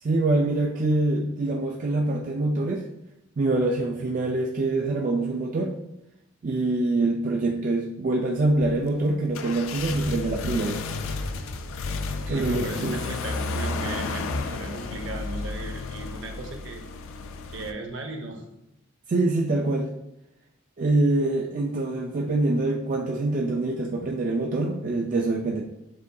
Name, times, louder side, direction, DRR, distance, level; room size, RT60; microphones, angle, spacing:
voice 1, 0.0-2.9 3.4-5.7 6.4-10.8 12.3-13.0 19.1-19.9 20.8-25.7, right 2 dB, 40° right, 0 dB, 0.3 m, -25 dB
start engine, 8.5-17.7, left 3 dB, 80° left, 0.3 m, -32 dB
voice 2, 12.2-16.8 17.5-18.4, right 2 dB, 65° right, 3 dB, 0.7 m, -36 dB
7.3 x 2.6 x 2.2 m, 0.87 s
head